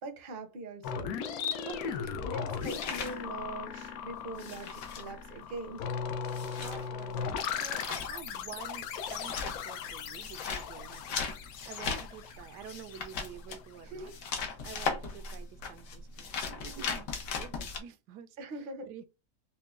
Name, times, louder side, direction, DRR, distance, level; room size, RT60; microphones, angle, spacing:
voice 1, 0.0-5.9 11.9-12.0 13.8-14.2 18.4-19.0, right 2 dB, 45° right, 0.7 m, -43 dB
sound 1, 0.8-13.5, left 7 dB, 70° left, 1.0 m, -38 dB
sound 2, 1.7-3.9 4.1-17.8, left 5 dB, 90° left, 1.6 m, -38 dB
voice 2, 6.4-14.1 14.6-19.0, right 8 dB, 85° right, 1.2 m, -49 dB
5.5 x 2.2 x 2.4 m
omnidirectional pair, 1.8 m